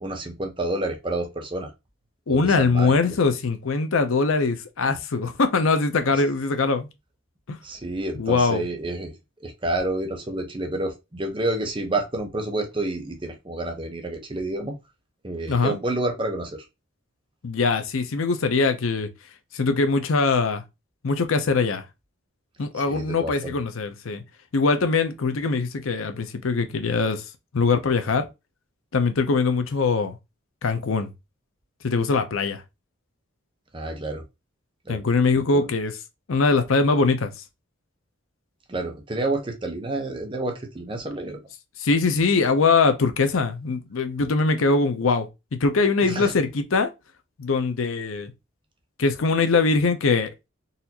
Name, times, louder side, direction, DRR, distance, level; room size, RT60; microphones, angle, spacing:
voice 1, 0.0-1.7 2.3-3.2 7.6-9.1 9.4-14.8 15.2-16.7 22.9-23.6 33.7-34.2 34.9-35.0 35.5-35.7 38.7-41.4 46.0-46.3, right 2 dB, 25° right, 0.7 m, -29 dB
voice 2, 2.3-6.9 7.5-7.6 8.2-8.6 15.5-15.8 17.4-19.1 19.5-20.6 21.0-21.8 22.6-24.2 24.5-27.2 27.5-28.2 28.9-30.2 30.6-31.1 31.8-32.6 34.9-35.9 36.3-37.3 41.8-45.3 45.6-46.9 47.4-48.3 49.0-50.3, left 4 dB, 80° left, 0.6 m, -22 dB
4.0 x 2.5 x 2.8 m
head